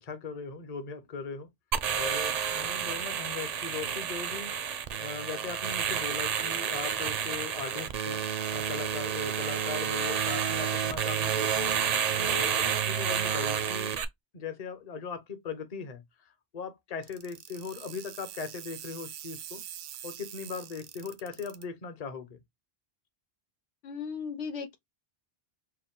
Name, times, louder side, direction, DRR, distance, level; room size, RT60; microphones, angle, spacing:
voice 1, 0.0-1.5 1.9-8.2 8.5-11.8 12.2-14.0 14.3-19.6 20.0-22.4, left 5 dB, 40° left, 0.8 m, -39 dB
sound 1, 1.7-14.0, right 8 dB, 55° right, 0.5 m, -30 dB
sound 2, 17.0-21.6, right 10 dB, 80° right, 0.8 m, -44 dB
voice 2, 23.8-24.8, left 6 dB, 90° left, 1.1 m, -36 dB
4.4 x 2.1 x 3.6 m
omnidirectional pair, 1.1 m